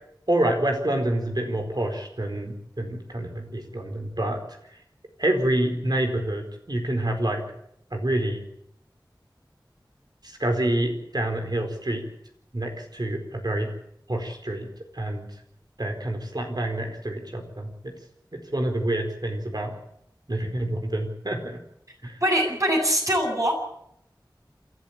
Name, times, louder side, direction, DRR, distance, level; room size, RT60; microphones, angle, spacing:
voice 1, 0.3-4.4 5.2-7.4 7.9-8.4 10.2-12.0 12.5-13.7 14.1-14.7 14.9-15.3 15.8-17.9 18.3-19.7 20.3-21.6 22.0-22.2, right 1 dB, 60° right, 4 dB, 4.4 m, -27 dB
voice 2, 22.2-23.5, equal, 40° right, 1 dB, 8.0 m, -22 dB
27.5 x 12.5 x 8.7 m, 0.74 s
wide cardioid pair, 45°, 8 cm